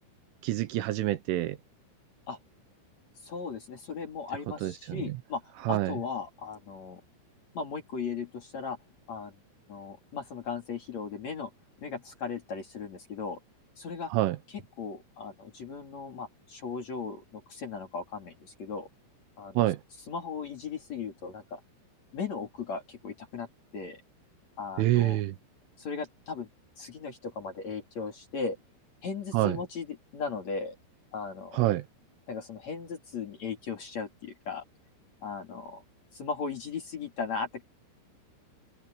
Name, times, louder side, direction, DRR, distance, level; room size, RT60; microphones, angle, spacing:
voice 1, 0.4-1.6 4.6-5.0 5.7-5.9 14.1-14.4 19.6-19.8 24.8-25.4 29.3-29.6 31.6-31.8, right 15 dB, 75° right, 3.4 m, -26 dB
voice 2, 3.2-7.0 7.5-8.8 9.1-9.4 9.7-11.5 11.8-13.4 13.8-14.1 14.5-18.9 19.4-19.6 20.1-21.6 22.1-23.5 23.7-24.0 24.6-25.2 25.8-26.5 26.8-28.6 29.0-30.7 31.1-31.6 32.3-34.6 35.2-35.8 36.1-37.6, left 5 dB, 40° left, 3.5 m, -37 dB
omnidirectional pair, 5.8 m